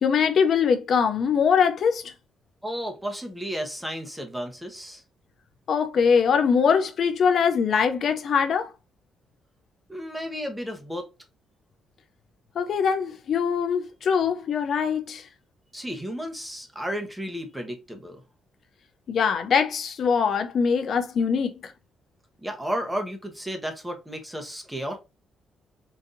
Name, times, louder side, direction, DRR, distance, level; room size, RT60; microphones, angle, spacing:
voice 1, 0.0-2.1 5.7-8.7 12.6-15.2 19.1-21.7, left 6 dB, 60° left, 0.4 m, -22 dB
voice 2, 2.6-5.0 9.9-11.1 15.7-18.2 22.4-25.0, equal, 5° right, 0.9 m, -33 dB
3.9 x 2.6 x 2.5 m
cardioid pair, 90°, 0 cm